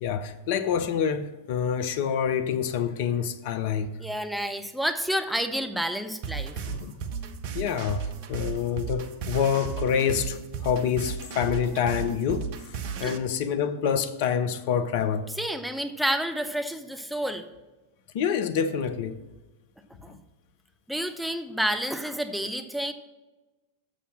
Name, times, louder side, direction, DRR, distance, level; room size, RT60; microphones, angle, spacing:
voice 1, 0.0-3.9 6.7-6.9 7.5-15.3 18.1-19.2 20.1-20.2, left 7 dB, 50° left, 0.6 m, -27 dB
voice 2, 4.0-6.6 13.0-13.2 15.4-17.5 20.0-20.1 20.9-22.9, equal, ahead, 0.5 m, -29 dB
sound 1, 6.2-13.2, right 6 dB, 50° right, 0.6 m, -34 dB
6.9 x 6.1 x 7.1 m
figure-of-eight pair, 90°, 0 cm